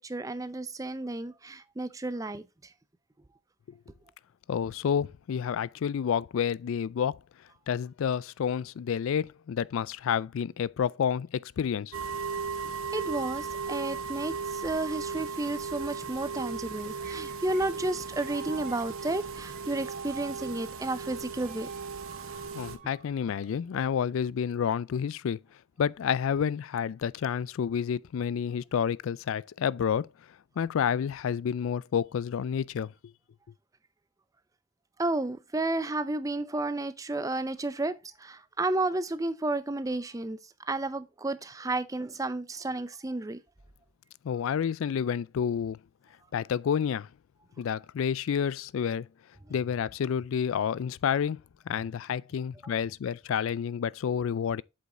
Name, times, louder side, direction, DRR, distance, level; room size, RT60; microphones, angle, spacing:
voice 1, 0.0-2.4 12.9-21.7 35.0-40.4 40.7-43.4 52.6-52.7, right 2 dB, 15° right, 0.4 m, -32 dB
voice 2, 4.5-7.2 7.7-11.9 22.5-25.4 25.8-30.1 30.6-32.9 44.2-45.8 46.3-47.1 47.6-49.1 49.5-51.4 51.7-54.6, left 7 dB, 70° left, 0.3 m, -29 dB
sound 1, 11.9-22.8, right 5 dB, 70° right, 0.9 m, -37 dB
sound 2, 16.5-24.0, right 6 dB, 35° right, 0.8 m, -47 dB
7.9 x 5.3 x 3.7 m
head